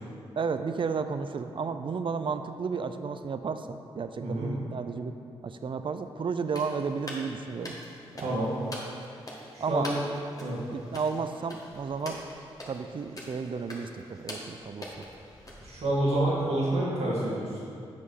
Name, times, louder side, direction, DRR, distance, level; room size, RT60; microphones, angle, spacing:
voice 1, 0.3-5.2 5.4-7.8 8.2-8.4 9.6-9.9 10.7-12.2 12.7-15.0, right 5 dB, 50° right, 9 dB, 0.5 m, -33 dB
voice 2, 4.2-4.5 8.2-8.6 9.5-10.0 10.4-10.6 15.6-17.6, right 1 dB, 75° right, -6 dB, 1.9 m, -28 dB
sound 1, 6.5-16.2, left 1 dB, 30° left, 1.7 m, -44 dB
8.2 x 5.1 x 4.1 m, 2.5 s
supercardioid pair, 45°, 11 cm